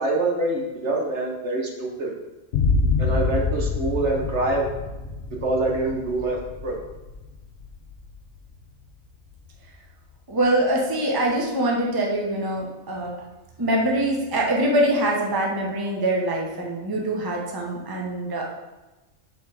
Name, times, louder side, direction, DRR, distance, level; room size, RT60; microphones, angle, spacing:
voice 1, 0.0-2.1 3.0-4.7 5.4-6.8, right 2 dB, 60° right, 0 dB, 1.4 m, -25 dB
sound 1, 2.5-9.9, left 4 dB, 55° left, 1.0 m, -27 dB
voice 2, 10.3-13.1 13.6-18.4, right 1 dB, 20° right, -1 dB, 1.0 m, -24 dB
6.6 x 4.5 x 4.8 m, 1.1 s
omnidirectional pair, 1.4 m